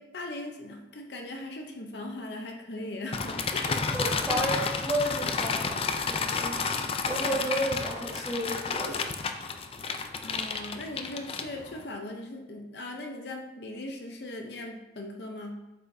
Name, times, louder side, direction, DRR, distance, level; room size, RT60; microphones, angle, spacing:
voice 1, 0.0-3.9 4.3-4.5 10.2-15.6, left 1 dB, 65° left, 2 dB, 0.7 m, -39 dB
sound 1, 3.1-11.8, left 4 dB, 30° left, 0.4 m, -31 dB
voice 2, 3.9-5.8 6.0-6.6 7.0-9.0, right 1 dB, ahead, -8 dB, 2.0 m, -32 dB
7.8 x 5.6 x 2.7 m, 0.99 s
head